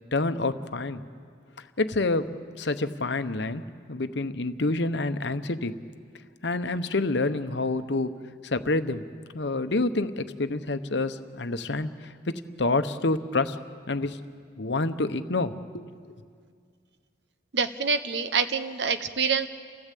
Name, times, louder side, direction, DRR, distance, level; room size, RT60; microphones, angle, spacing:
voice 1, 0.1-1.0 1.8-3.6 3.9-5.8 6.4-8.1 8.4-9.0 9.3-13.6 13.9-14.2 14.6-16.2, left 2 dB, 65° left, 10 dB, 0.9 m, -28 dB
voice 2, 17.5-19.5, right 5 dB, 65° right, 10 dB, 0.9 m, -26 dB
30.0 x 16.0 x 8.4 m, 2.1 s
head